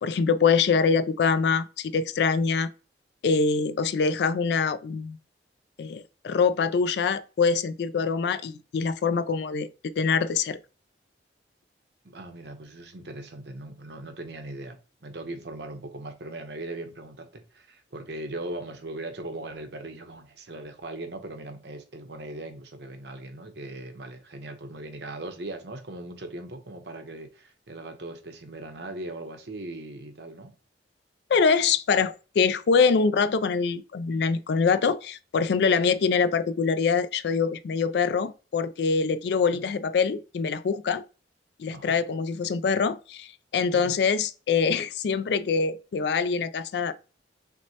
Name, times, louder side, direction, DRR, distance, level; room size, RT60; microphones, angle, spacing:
voice 1, 0.0-2.7 3.2-5.2 5.8-9.7 10.0-10.6 31.3-41.0 41.6-46.9, left 5 dB, 70° left, 0.3 m, -24 dB
voice 2, 12.0-30.5 39.5-39.6 41.7-41.9 43.7-44.0, right 2 dB, 70° right, 0.8 m, -39 dB
6.0 x 2.1 x 2.7 m
head